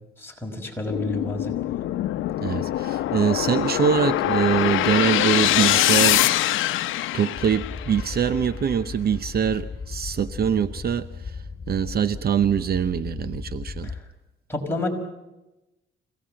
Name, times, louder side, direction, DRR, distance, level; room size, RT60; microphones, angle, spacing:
voice 1, 0.2-1.5 13.8-13.9 14.5-14.9, left 2 dB, 10° left, 1 dB, 5.5 m, -29 dB
sound 1, 0.9-8.1, left 14 dB, 85° left, 0.8 m, -23 dB
voice 2, 2.4-6.3 7.1-13.9, right 8 dB, 50° right, 13 dB, 0.8 m, -24 dB
sound 2, 7.3-14.0, left 4 dB, 35° left, 3.8 m, -36 dB
25.5 x 18.0 x 7.7 m, 1.0 s
cardioid pair, 90°, 20 cm